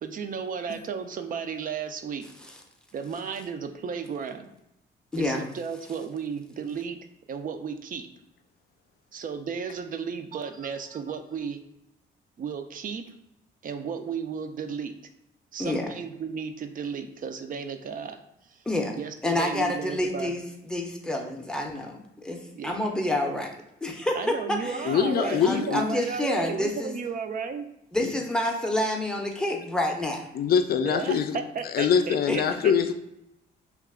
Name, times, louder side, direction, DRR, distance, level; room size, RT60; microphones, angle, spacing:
voice 1, 0.0-2.2 2.9-4.5 5.1-7.0 7.3-8.1 9.1-11.6 12.4-13.0 13.6-14.9 15.5-18.2 18.5-18.6 19.0-20.3 22.5-22.7 24.2-27.6 30.8-32.7, right 6 dB, 45° right, 7 dB, 0.4 m, -34 dB
voice 2, 5.1-5.4 15.6-15.9 18.7-23.5 23.8-24.9 25.2-26.9 27.9-30.3 32.3-32.4, left 1 dB, 5° left, 1 dB, 0.6 m, -28 dB
voice 3, 24.8-25.8 28.0-28.1 30.3-31.4 31.7-32.9, left 7 dB, 50° left, 8 dB, 0.4 m, -23 dB
2.9 x 2.3 x 3.5 m, 0.84 s
cardioid pair, 90°, 20 cm